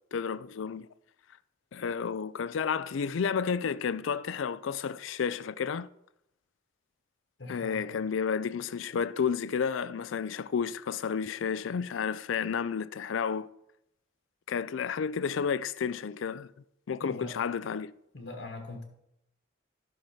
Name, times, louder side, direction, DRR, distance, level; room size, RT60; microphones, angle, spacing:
voice 1, 0.1-0.9 1.7-5.9 7.5-13.5 14.5-16.5 16.9-17.9, left 6 dB, 85° left, 0.4 m, -31 dB
voice 2, 7.4-8.0 17.0-17.4 18.1-18.8, left 2 dB, 65° left, 1.3 m, -42 dB
11.5 x 6.0 x 5.6 m
head